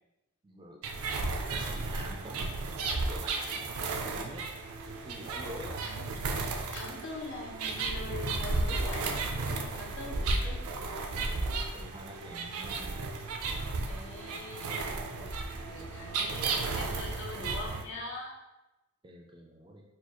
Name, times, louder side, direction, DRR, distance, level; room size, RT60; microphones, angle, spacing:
voice 1, 0.4-0.8 1.5-2.5 2.9-4.5 5.0-5.8 9.8-13.0 14.3-14.8 19.0-19.8, equal, 20° right, 1 dB, 0.4 m, -47 dB
sound 1, 0.8-17.8, right 3 dB, 85° right, 0.4 m, -34 dB
voice 2, 6.5-10.7 13.8-18.4, left 2 dB, 60° left, -2 dB, 0.7 m, -43 dB
4.2 x 2.3 x 2.9 m, 0.98 s
head